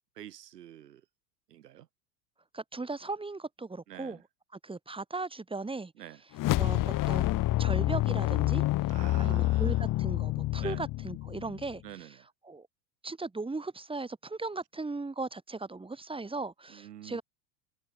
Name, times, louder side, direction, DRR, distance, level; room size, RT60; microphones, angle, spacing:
voice 1, 0.1-1.0 1.5-1.9 3.9-4.2 6.0-6.2 7.5-7.7 8.9-9.9 10.6-10.8 11.8-12.3 16.7-17.2, right 12 dB, 85° right, 3.4 m, -47 dB
voice 2, 2.5-4.2 4.6-5.9 6.6-8.6 9.2-12.1 12.4-12.7 13.0-17.2, right 3 dB, 10° right, 3.1 m, -37 dB
sound 1, 6.3-11.7, left 16 dB, 40° left, 1.5 m, -28 dB
hypercardioid pair, 90°, 47 cm